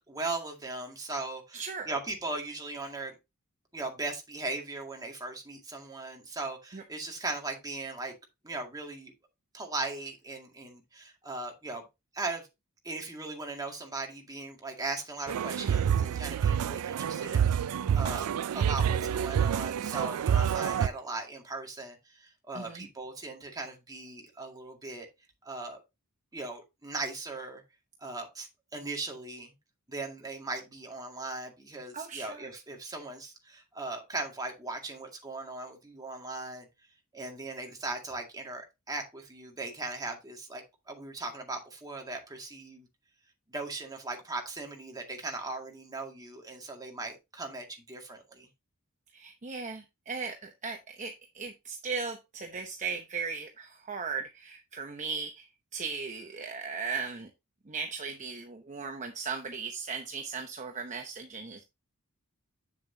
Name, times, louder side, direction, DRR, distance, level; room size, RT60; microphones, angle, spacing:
voice 1, 0.1-3.1 3.7-8.1 8.4-9.1 9.5-11.8 12.1-12.4 12.8-17.7 17.9-18.3 18.5-25.1 25.4-25.8 26.3-27.6 28.0-29.5 29.9-36.7 37.1-42.9 43.5-48.5, right 3 dB, 15° right, 2.1 m, -38 dB
voice 2, 1.5-1.9 6.7-6.8 22.5-22.9 31.9-32.5 49.1-57.3 57.7-61.6, right 5 dB, 35° right, 0.8 m, -37 dB
sound 1, 15.3-20.9, right 8 dB, 85° right, 0.4 m, -28 dB
8.1 x 7.1 x 2.8 m
head